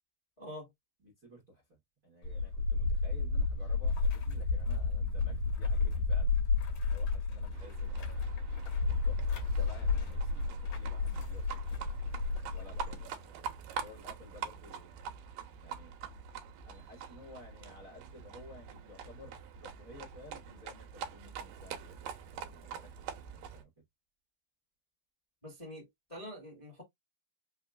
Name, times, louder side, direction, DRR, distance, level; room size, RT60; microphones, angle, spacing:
voice 1, 0.4-0.7 9.6-9.7 25.4-26.8, equal, 20° left, 0.9 m, -46 dB
voice 2, 1.0-6.3 6.8-8.0 8.9-9.2 9.6-12.0 12.5-13.4 13.7-14.9 15.6-15.9 16.6-23.8, left 2 dB, 70° right, 0.8 m, -55 dB
sound 1, 2.2-13.0, left 4 dB, 55° left, 2.3 m, -32 dB
Livestock farm animals working animals, 7.5-23.6, right 7 dB, 85° right, 2.4 m, -45 dB
5.4 x 2.4 x 2.4 m
omnidirectional pair, 3.9 m